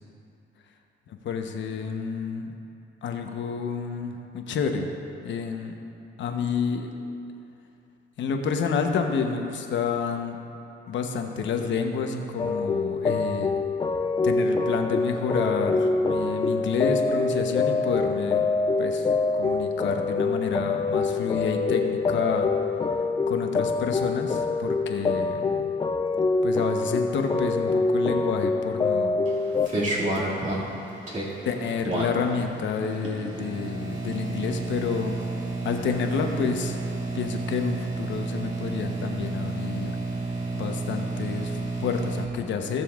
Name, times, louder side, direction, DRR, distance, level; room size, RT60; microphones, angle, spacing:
voice 1, 1.2-2.5 3.0-4.9 5.2-5.8 6.2-6.9 8.2-10.4 10.9-13.6 14.2-18.5 18.8-19.1 19.4-22.5 23.3-25.7 26.4-29.2 29.7-30.3 31.4-35.2 35.6-36.8 37.1-39.9 40.5-42.8, left 5 dB, 70° left, 4 dB, 0.9 m, -29 dB
sound 1, 12.4-29.7, left 3 dB, 25° left, 0.4 m, -25 dB
sound 2, 29.2-42.3, right 2 dB, 40° right, 2.2 m, -31 dB
18.0 x 6.9 x 2.4 m, 2.7 s
cardioid pair, 90°, 20 cm